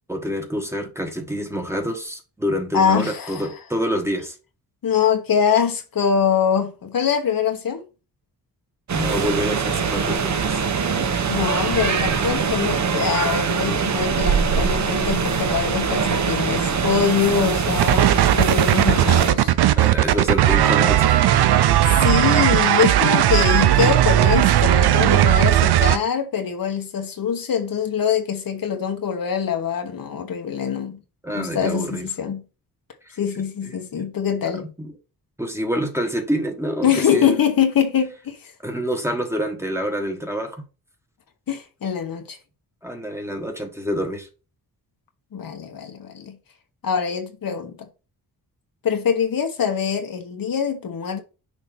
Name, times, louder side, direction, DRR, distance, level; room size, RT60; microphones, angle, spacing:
voice 1, 0.1-4.3 8.9-10.6 19.8-21.2 31.2-32.1 33.0-34.1 34.5-34.9 35.4-37.3 38.6-40.6 42.8-44.3, equal, 5° right, 1.3 m, -27 dB
voice 2, 2.7-3.5 4.8-7.8 11.3-19.5 21.8-31.0 31.3-32.4 33.2-34.6 36.8-38.5 41.5-42.4 45.3-46.4 46.8-47.9 48.8-51.2, left 7 dB, 60° left, 1.2 m, -23 dB
sound 1, 8.9-19.3, right 6 dB, 45° right, 1.0 m, -22 dB
sound 2, 17.8-26.0, right 12 dB, 80° right, 0.6 m, -16 dB
6.4 x 2.8 x 5.2 m
cardioid pair, 100°, 38 cm